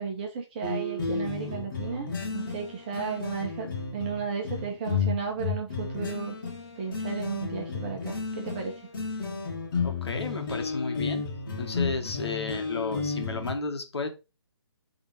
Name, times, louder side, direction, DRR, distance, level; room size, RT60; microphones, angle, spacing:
voice 1, 0.0-6.4 6.8-8.7, right 6 dB, 20° right, 1.5 m, -34 dB
sound 1, 0.6-13.5, left 4 dB, 45° left, 2.4 m, -32 dB
voice 2, 9.8-11.2 11.6-14.1, left 4 dB, 65° left, 2.0 m, -33 dB
8.6 x 4.0 x 4.7 m
hypercardioid pair, 170°, 15 cm